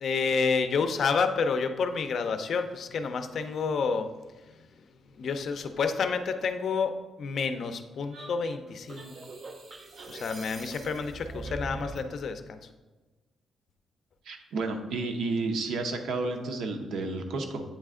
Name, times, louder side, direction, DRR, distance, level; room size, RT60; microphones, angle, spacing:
voice 1, 0.0-4.1 5.2-9.2 10.1-12.6, left 5 dB, 55° left, 8 dB, 0.4 m, -29 dB
sound 1, 8.1-12.1, right 2 dB, 35° right, 0.6 m, -41 dB
voice 2, 14.3-17.6, right 3 dB, 75° right, 4 dB, 0.8 m, -31 dB
8.3 x 3.3 x 3.7 m, 1.2 s
wide cardioid pair, 160°, 0 cm